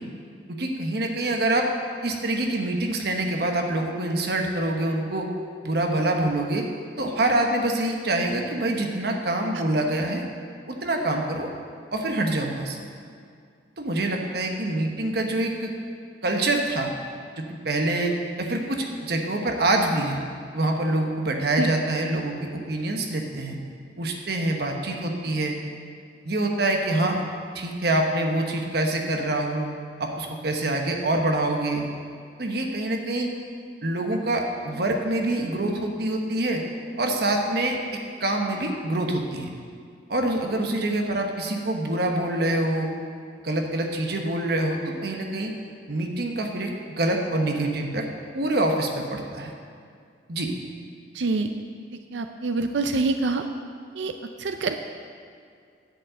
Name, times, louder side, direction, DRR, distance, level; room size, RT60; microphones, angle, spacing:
voice 1, 0.5-1.7 2.0-5.3 5.6-6.7 7.0-10.2 10.7-11.5 11.9-12.8 13.8-15.7 16.2-16.9 17.6-20.2 20.5-23.6 24.0-25.5 26.2-27.2 27.5-29.7 30.0-31.8 32.4-33.3 33.8-36.6 37.0-37.8 38.2-39.5 40.1-42.9 43.4-45.5 45.9-46.7 47.0-48.0 48.3-49.5 50.3-50.5, right 1 dB, 60° right, 2 dB, 1.1 m, -25 dB
voice 2, 51.1-51.5 52.1-53.4 54.0-54.1 54.4-54.8, right 3 dB, 80° right, 6 dB, 0.5 m, -25 dB
10.5 x 5.4 x 7.8 m, 2.2 s
head